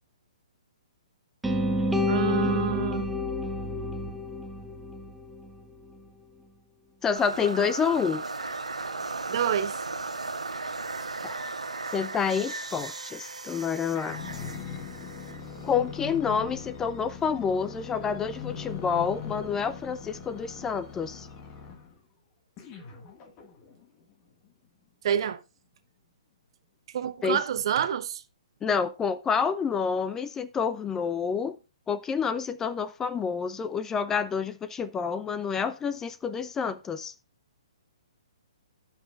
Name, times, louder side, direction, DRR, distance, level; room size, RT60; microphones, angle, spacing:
sound 1, 1.4-5.5, left 1 dB, 5° right, 0.8 m, -28 dB
voice 1, 2.1-3.1 9.3-9.7 25.0-25.4 26.9-28.2, right 9 dB, 50° right, 0.8 m, -28 dB
voice 2, 7.0-8.2 11.2-11.4 11.9-14.2 15.6-21.3 27.2-27.4 28.6-31.6 31.9-37.1, left 6 dB, 15° left, 0.4 m, -28 dB
sound 2, 7.1-16.2, right 3 dB, 90° right, 1.1 m, -36 dB
sound 3, 14.0-22.0 22.6-23.8 24.5-24.6, left 6 dB, 30° left, 1.4 m, -41 dB
17.0 x 5.7 x 2.4 m
hypercardioid pair, 130°, 3 cm